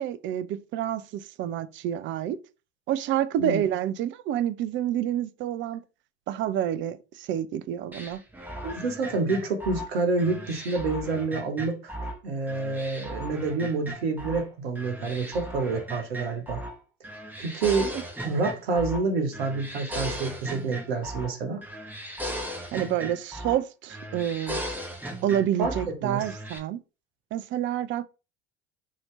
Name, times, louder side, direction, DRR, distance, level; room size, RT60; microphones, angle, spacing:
voice 1, 0.0-2.4 2.9-5.8 6.3-8.2 22.7-24.6 25.2-26.8 27.3-28.1, right 11 dB, 40° right, 0.4 m, -28 dB
sound 1, 7.9-12.2 12.5-14.5 14.8-16.8 17.0-19.1 19.3-21.4 21.6-23.6 23.9-25.9 26.2-26.6, equal, 5° right, 1.0 m, -37 dB
voice 2, 8.6-16.6 17.4-17.9 18.2-21.6 25.6-26.2, right 3 dB, 75° right, 1.0 m, -28 dB
2.8 x 2.8 x 3.2 m
hypercardioid pair, 70°, 30 cm